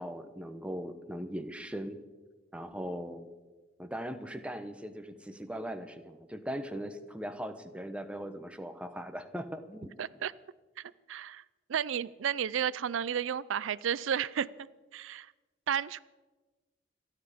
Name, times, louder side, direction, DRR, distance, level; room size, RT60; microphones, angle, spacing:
voice 1, 0.0-2.0 2.5-3.3 3.8-9.9, equal, 5° right, 7 dB, 0.9 m, -39 dB
voice 2, 10.0-10.3 10.8-11.4 11.7-14.5 14.9-15.3 15.7-16.0, right 8 dB, 85° right, 19 dB, 0.4 m, -32 dB
26.5 x 10.0 x 5.0 m, 1.2 s
head